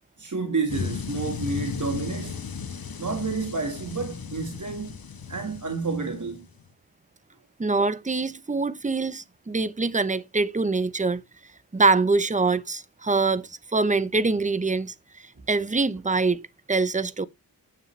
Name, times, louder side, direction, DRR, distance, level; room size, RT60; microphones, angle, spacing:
voice 1, 0.2-2.4 3.0-5.0 5.3-6.5, right 4 dB, 50° right, 1.8 m, -30 dB
sound 1, 0.7-6.6, left 6 dB, 65° left, 1.2 m, -35 dB
voice 2, 7.6-11.2 11.7-17.3, right 3 dB, 20° right, 0.8 m, -24 dB
9.6 x 7.4 x 3.2 m
wide cardioid pair, 60°, 38 cm